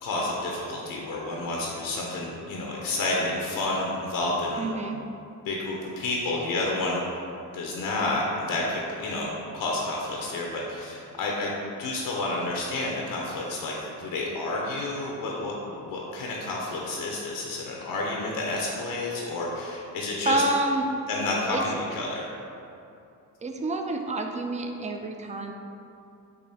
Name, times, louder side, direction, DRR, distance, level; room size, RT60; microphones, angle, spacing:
voice 1, 0.0-4.7 5.4-7.0 7.5-9.3 9.5-20.4 21.1-22.3, left 2 dB, 75° left, -2 dB, 0.6 m, -30 dB
voice 2, 4.6-5.0 20.3-20.9 21.5-21.6 23.4-25.5, right 2 dB, 20° right, 4 dB, 0.3 m, -28 dB
4.7 x 2.4 x 2.7 m, 2.6 s
supercardioid pair, 60°, 35 cm